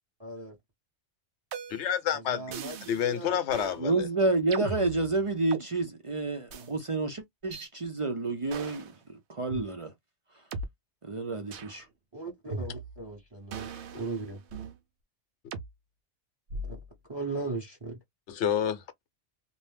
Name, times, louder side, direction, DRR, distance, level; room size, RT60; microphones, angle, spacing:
voice 1, 0.2-0.5 2.1-3.4 12.1-13.7 13.9-14.4 16.7-16.8 17.1-18.0, right 3 dB, 25° right, 1.1 m, -37 dB
sound 1, 1.5-2.0 2.5-3.1 3.5-3.8 4.5-5.7 6.5-6.7 7.5-7.7 8.5-8.9 9.5-9.6 10.5-10.6 11.5-11.8 12.5-13.1 13.5-14.8 15.5-15.7 16.5-16.9, right 4 dB, 70° right, 0.9 m, -39 dB
voice 2, 1.7-2.4 2.9-4.1 13.9-14.0 18.3-18.8, left 9 dB, 75° left, 0.9 m, -28 dB
voice 3, 3.8-9.9 11.0-11.9, right 3 dB, 40° right, 0.4 m, -29 dB
2.6 x 2.1 x 3.2 m
omnidirectional pair, 1.2 m